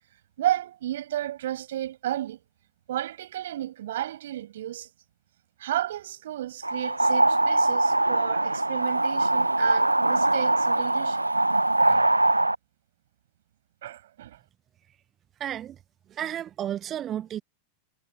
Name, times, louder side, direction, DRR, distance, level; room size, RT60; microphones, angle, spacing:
voice 1, 0.4-2.4 2.9-4.9 5.6-11.3 11.9-12.1 13.8-14.4, right 12 dB, 60° right, 7.0 m, -32 dB
sound 1, 6.6-12.5, right 2 dB, 85° right, 1.4 m, -22 dB
voice 2, 15.4-15.8 16.1-17.4, right 10 dB, 30° right, 1.2 m, -32 dB
figure-of-eight pair, 90°, 0 cm